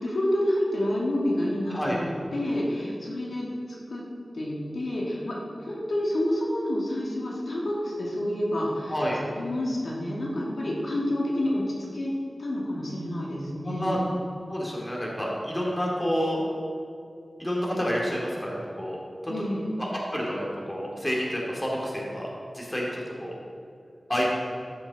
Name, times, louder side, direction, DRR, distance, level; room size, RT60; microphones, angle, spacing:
voice 1, 0.0-3.5 3.9-4.0 4.3-8.9 9.3-11.6 11.9-12.1 12.4-14.0 19.3-19.6, left 1 dB, 80° left, -4 dB, 2.2 m, -28 dB
voice 2, 13.6-14.0 14.5-16.5 17.4-19.0 19.2-19.3 19.8-23.3 24.1-24.3, equal, 15° left, -4 dB, 2.6 m, -29 dB
13.5 x 6.2 x 4.2 m, 2.4 s
wide cardioid pair, 70°, 0 cm